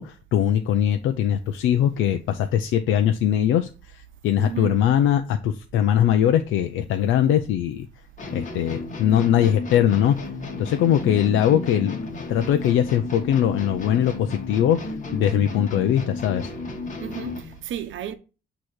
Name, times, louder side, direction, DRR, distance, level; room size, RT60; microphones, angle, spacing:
voice 1, 0.0-7.9 8.3-10.2 10.6-12.0 12.3-16.5, left 10 dB, 90° left, 0.6 m, -21 dB
voice 2, 4.4-4.8 17.0-18.1, right 10 dB, 75° right, 0.9 m, -33 dB
sound 1, 8.2-17.6, left 3 dB, 40° left, 2.0 m, -33 dB
8.4 x 3.0 x 4.7 m
cardioid pair, 90°, 20 cm